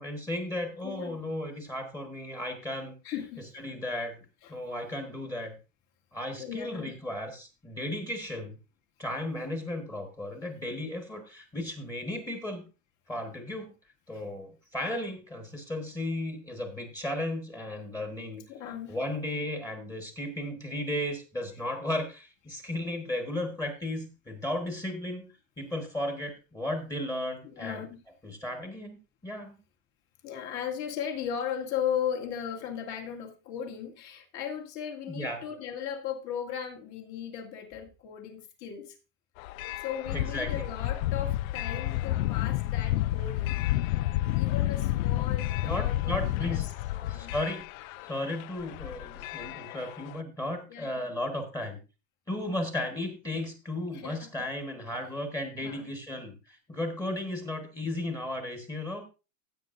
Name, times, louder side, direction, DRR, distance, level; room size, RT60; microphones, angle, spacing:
voice 1, 0.0-3.0 3.5-4.2 4.5-5.6 6.1-8.6 9.0-12.6 13.1-13.7 14.1-18.4 18.9-27.8 28.2-29.0 29.2-29.5 35.1-35.4 40.1-40.7 45.6-46.7 47.1-47.6 48.1-51.8 52.3-59.1, left 1 dB, 10° left, 1.4 m, -35 dB
voice 2, 0.8-1.2 3.0-3.4 4.4-4.6 6.4-6.9 18.5-19.2 27.4-28.0 30.2-39.0 39.8-43.6 44.3-47.3 50.7-51.1 53.9-54.3 55.5-55.9, left 8 dB, 40° left, 2.1 m, -37 dB
sound 1, 39.4-50.2, left 15 dB, 75° left, 0.5 m, -30 dB
16.0 x 8.0 x 2.6 m
supercardioid pair, 165°, 42 cm